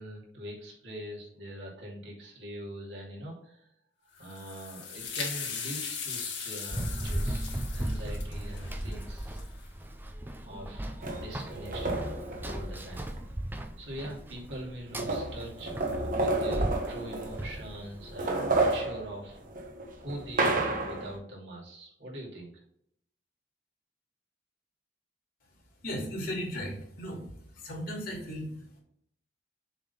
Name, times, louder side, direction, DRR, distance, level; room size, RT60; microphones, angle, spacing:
voice 1, 0.0-3.7 4.2-9.4 10.5-12.1 12.4-13.1 13.8-19.7 20.0-22.5, right 1 dB, 75° right, -4 dB, 2.7 m, -43 dB
sound 1, 4.1-9.7, left 6 dB, 80° left, 2.3 m, -39 dB
Run, 6.7-18.1, right 1 dB, 10° right, 0.6 m, -36 dB
sound 2, 11.0-13.2 14.2-14.3 14.5-17.7 18.0-21.2, right 2 dB, 50° right, 1.3 m, -31 dB
voice 2, 25.8-27.2 27.5-28.8, equal, 55° left, -1 dB, 2.6 m, -36 dB
7.1 x 3.8 x 5.6 m, 0.72 s
head